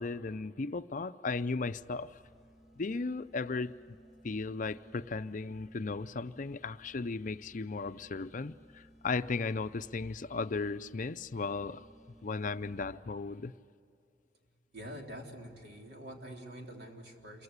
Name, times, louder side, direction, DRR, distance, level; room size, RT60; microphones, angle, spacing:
voice 1, 0.0-2.1 2.8-4.0 4.2-11.8 12.2-13.5, left 4 dB, 50° left, 0.6 m, -36 dB
sound 1, 1.7-13.2, equal, ahead, 2.5 m, -60 dB
voice 2, 14.7-17.4, equal, 65° right, 3.5 m, -46 dB
28.0 x 23.5 x 8.2 m
head